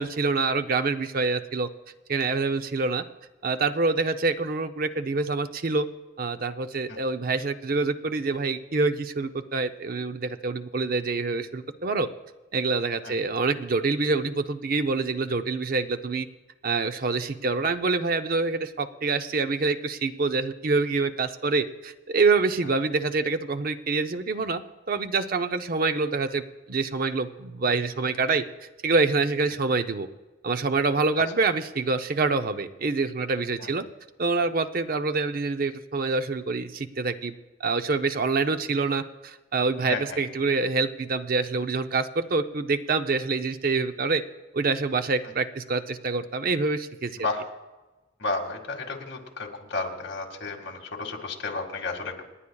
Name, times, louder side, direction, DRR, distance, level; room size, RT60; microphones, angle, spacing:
voice 1, 0.0-1.7 2.1-3.0 3.4-5.9 6.2-12.1 12.5-16.3 16.6-24.6 24.9-28.4 28.8-30.1 30.4-33.8 34.2-37.3 37.6-44.2 44.5-47.1, right 3 dB, 45° right, 9 dB, 0.6 m, -26 dB
voice 2, 39.8-40.2 47.2-47.5 48.2-52.2, left 3 dB, 60° left, 0 dB, 2.0 m, -32 dB
28.0 x 9.9 x 2.3 m, 1.2 s
head